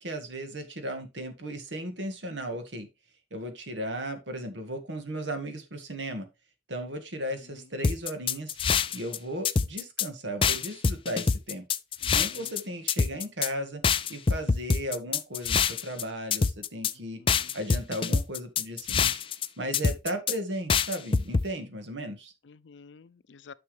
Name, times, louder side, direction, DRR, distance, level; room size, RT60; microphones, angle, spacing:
voice 1, 0.0-2.9 3.3-6.3 6.7-8.6 8.9-11.6 12.1-13.8 14.1-17.2 17.5-19.1 19.6-22.3, right 1 dB, 90° right, 1.7 m, -35 dB
sound 1, 7.8-9.2 9.4-10.1 10.4-12.6 12.9-13.5 13.8-16.0 16.3-16.9 17.3-19.5 19.7-20.3 20.7-21.4, left 5 dB, 30° left, 0.4 m, -25 dB
voice 2, 12.0-12.5 17.1-17.5 22.4-23.5, left 5 dB, 85° left, 0.5 m, -51 dB
9.6 x 6.1 x 3.2 m
head